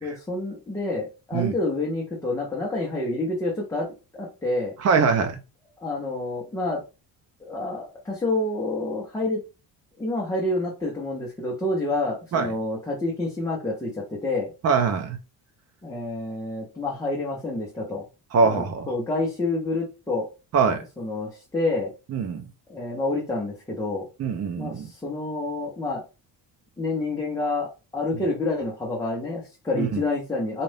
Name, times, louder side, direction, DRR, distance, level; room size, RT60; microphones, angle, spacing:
voice 1, 0.0-3.9 4.1-4.7 5.8-6.8 7.5-9.4 10.0-14.5 15.8-18.0 18.4-20.3 21.0-21.9 22.7-24.1 24.6-26.0 26.8-30.6, left 2 dB, 10° left, 0.8 m, -28 dB
voice 2, 4.8-5.4 12.3-12.5 14.6-15.2 18.3-18.9 20.5-20.8 22.1-22.4 24.2-24.9 28.1-28.2 29.8-30.0, right 5 dB, 35° right, 0.7 m, -23 dB
4.1 x 2.5 x 3.3 m
cardioid pair, 180°, 42 cm